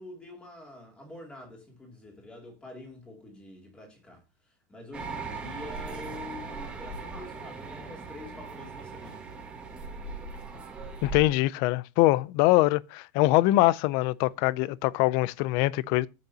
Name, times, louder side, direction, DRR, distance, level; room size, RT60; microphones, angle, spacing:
voice 1, 0.0-4.2 4.7-9.2, left 2 dB, 10° left, 2.7 m, -46 dB
sound 1, 4.9-11.2, right 3 dB, 10° right, 1.6 m, -39 dB
voice 2, 11.0-16.1, left 18 dB, 40° left, 0.4 m, -23 dB
10.5 x 8.3 x 2.8 m
supercardioid pair, 180°, 10 cm